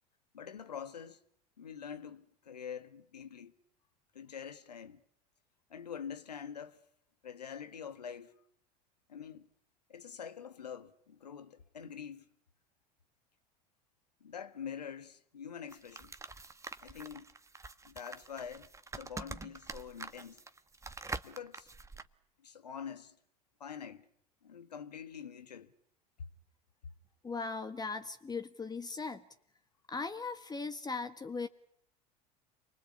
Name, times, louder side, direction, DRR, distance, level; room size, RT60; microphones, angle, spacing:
voice 1, 0.3-1.2 1.6-3.5 4.1-5.0 5.7-6.8 7.2-8.3 9.1-9.5 9.9-12.3 14.2-16.1 16.8-17.3 17.8-20.4 21.2-21.7 22.4-23.2 23.6-24.1 24.4-25.7, left 7 dB, 90° left, 1.6 m, -45 dB
sound 1, 15.7-22.1, right 3 dB, 15° right, 1.6 m, -45 dB
voice 2, 27.2-29.2 29.9-31.5, left 4 dB, 20° left, 1.6 m, -38 dB
29.0 x 24.0 x 8.6 m
hypercardioid pair, 75°, 20 cm